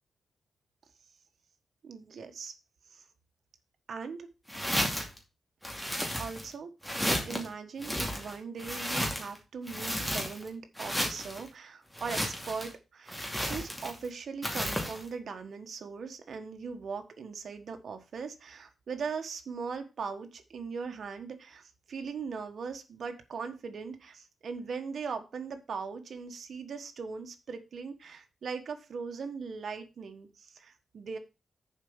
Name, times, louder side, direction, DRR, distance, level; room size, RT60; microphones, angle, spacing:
voice 1, 1.8-2.5 2.9-3.0 3.9-4.3 6.1-6.7 7.2-13.2 13.5-31.2, right 5 dB, 65° right, 6 dB, 1.3 m, -40 dB
sound 1, 4.5-5.2 5.6-6.5 6.8-7.5 7.8-9.4 9.7-10.5 10.8-11.4 11.9-12.7 13.1-14.1 14.4-15.0, equal, 5° left, 2.4 m, -33 dB
7.2 x 4.8 x 7.1 m, 0.29 s
cardioid pair, 95°, 0 cm